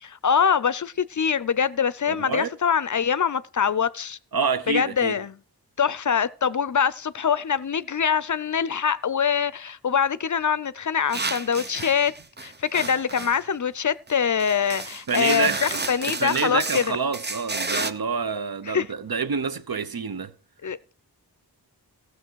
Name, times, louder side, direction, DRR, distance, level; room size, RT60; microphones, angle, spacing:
voice 1, 0.0-4.2 4.7-5.3 5.8-12.1 12.4-17.0 18.7-18.8 20.6-20.9, left 7 dB, 50° left, 0.5 m, -24 dB
voice 2, 2.1-2.5 4.3-5.2 15.1-20.3, right 5 dB, 65° right, 0.8 m, -27 dB
sound 1, 11.1-13.4 14.1-14.2 14.4-17.9, right 3 dB, 25° right, 0.7 m, -32 dB
15.0 x 6.7 x 4.6 m
wide cardioid pair, 45°, 39 cm